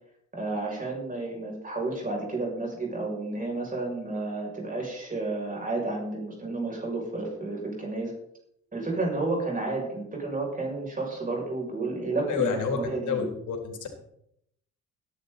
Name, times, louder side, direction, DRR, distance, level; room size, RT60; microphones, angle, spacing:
voice 1, 0.3-8.1 8.7-13.2, right 2 dB, 25° right, -1 dB, 6.5 m, -31 dB
voice 2, 12.3-12.8 13.1-13.9, left 6 dB, 75° left, 4 dB, 3.7 m, -29 dB
17.5 x 11.0 x 4.1 m, 0.74 s
cardioid pair, 90°, 30 cm